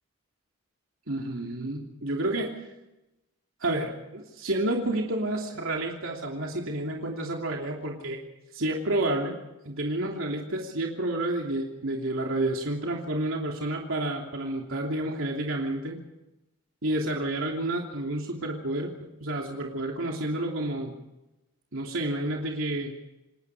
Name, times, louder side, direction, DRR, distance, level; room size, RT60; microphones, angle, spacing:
voice 1, 1.1-2.6 3.6-8.2 8.5-9.4 9.6-16.0 16.8-21.0 21.7-22.9, right 1 dB, 70° right, 0 dB, 3.0 m, -30 dB
28.5 x 20.5 x 4.9 m, 0.96 s
head